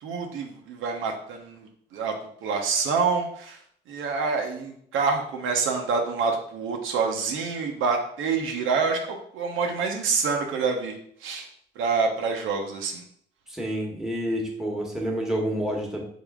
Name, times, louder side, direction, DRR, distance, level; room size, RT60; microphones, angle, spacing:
voice 1, 0.0-2.2 2.4-3.6 3.9-11.5 11.8-13.0, right 5 dB, 85° right, 3 dB, 0.8 m, -27 dB
voice 2, 13.5-16.0, equal, ahead, -2 dB, 1.2 m, -28 dB
3.8 x 3.6 x 3.5 m, 0.63 s
cardioid pair, 90°, 20 cm